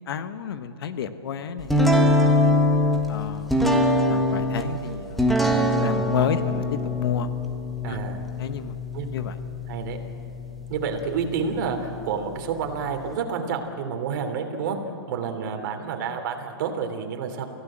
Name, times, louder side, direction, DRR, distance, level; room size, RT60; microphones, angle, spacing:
voice 1, 0.0-2.6 3.1-7.3 7.9-8.0 8.4-8.8 9.1-9.4, left 7 dB, 65° left, 10 dB, 1.4 m, -31 dB
sound 1, 1.7-13.2, left 1 dB, ahead, 1.4 m, -24 dB
voice 2, 7.8-8.2 8.9-9.2 9.7-10.0 10.7-14.8 15.1-17.4, right 6 dB, 50° right, 5 dB, 3.2 m, -29 dB
29.0 x 16.5 x 7.7 m, 2.9 s
hypercardioid pair, 155°, 13 cm